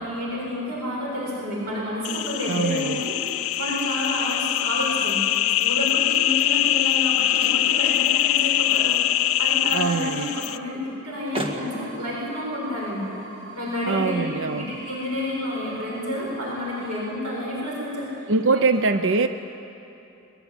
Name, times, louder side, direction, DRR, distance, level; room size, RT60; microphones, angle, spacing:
voice 1, 0.0-5.2 5.6-9.0 9.4-13.1 13.5-18.6 18.9-19.0, left 1 dB, 80° right, -4 dB, 7.6 m, -30 dB
sound 1, 2.0-10.6, left 13 dB, 65° left, 0.6 m, -23 dB
voice 2, 2.5-3.0 9.7-10.3 13.9-14.7 18.3-19.3, right 4 dB, 60° right, 10 dB, 0.7 m, -23 dB
sound 2, 4.5-14.8, right 1 dB, 25° right, 2.1 m, -41 dB
sound 3, 11.3-17.1, right 3 dB, 25° left, 5.2 m, -44 dB
22.0 x 21.5 x 10.0 m, 2.9 s
head